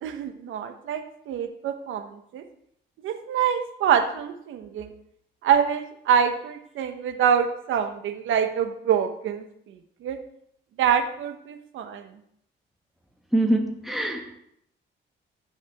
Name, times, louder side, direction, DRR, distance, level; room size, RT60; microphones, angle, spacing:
voice 1, 0.0-2.4 3.0-4.9 5.4-10.2 10.8-12.0, right 8 dB, 80° right, 8 dB, 1.1 m, -25 dB
voice 2, 13.3-14.4, right 1 dB, ahead, 1 dB, 2.0 m, -24 dB
15.5 x 6.2 x 3.5 m, 0.71 s
cardioid pair, 90°, 20 cm